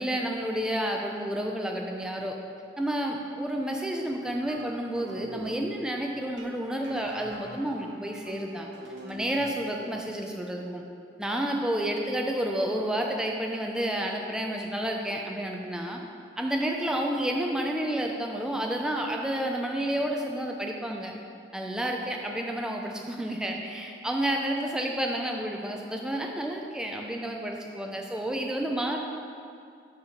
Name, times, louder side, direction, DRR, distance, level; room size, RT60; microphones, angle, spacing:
voice 1, 0.0-2.4 2.8-8.7 9.0-10.8 11.2-16.0 16.4-21.1 21.5-29.0, right 1 dB, 5° right, 1 dB, 0.4 m, -30 dB
sound 1, 4.3-10.0, right 2 dB, 70° right, 0.7 m, -45 dB
5.7 x 4.3 x 5.1 m, 2.4 s
head